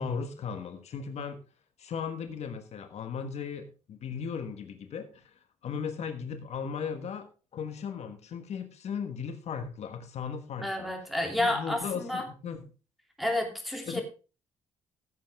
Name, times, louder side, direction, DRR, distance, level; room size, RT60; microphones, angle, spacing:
voice 1, 0.0-1.4 1.8-10.9 11.4-12.6 13.9-14.0, left 6 dB, 65° left, 7 dB, 1.5 m, -37 dB
voice 2, 10.6-12.3 13.2-14.0, left 1 dB, ahead, 3 dB, 2.9 m, -30 dB
15.5 x 8.0 x 3.6 m, 0.33 s
cardioid pair, 120°, 12 cm